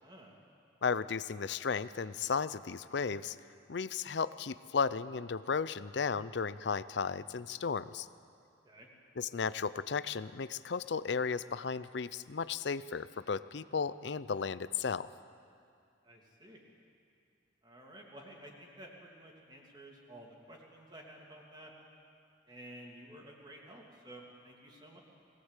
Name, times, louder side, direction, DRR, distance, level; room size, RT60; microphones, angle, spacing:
voice 1, 0.0-0.3 8.6-8.9 16.0-16.6 17.6-21.7 22.5-25.0, right 1 dB, 25° right, -1 dB, 2.7 m, -52 dB
voice 2, 0.8-3.4 3.7-8.1 9.2-15.1, left 5 dB, 65° left, 16 dB, 0.5 m, -34 dB
20.5 x 17.5 x 8.3 m, 2.4 s
head